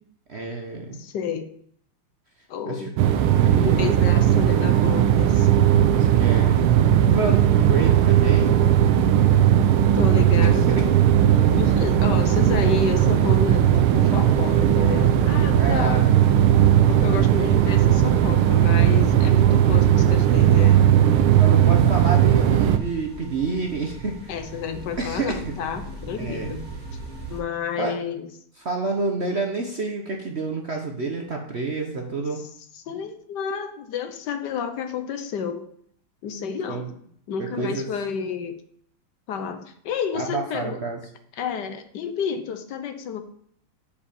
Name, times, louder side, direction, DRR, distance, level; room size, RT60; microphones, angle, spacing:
voice 1, 0.3-1.0 2.7-2.9 3.2-4.0 5.9-6.5 7.0-8.5 10.7-11.0 15.5-16.1 21.4-24.2 25.0-25.5 26.2-26.5 27.8-28.0 28.6-32.4 36.7-36.9 37.4-37.9 40.1-41.0, right 3 dB, 50° right, 2 dB, 0.8 m, -29 dB
voice 2, 1.0-1.5 2.5-2.9 3.5-5.5 9.9-10.8 11.5-16.1 16.9-20.8 24.3-26.7 27.3-28.3 32.4-32.5 32.9-35.7 36.2-36.9 37.3-38.6 39.3-40.8 41.4-43.2, left 6 dB, 65° left, 9 dB, 1.3 m, -30 dB
sound 1, 3.0-22.8, right 10 dB, 85° right, 1.5 m, -17 dB
sound 2, 10.7-27.4, right 2 dB, 30° right, 2.3 m, -40 dB
6.8 x 5.2 x 6.9 m, 0.64 s
omnidirectional pair, 2.3 m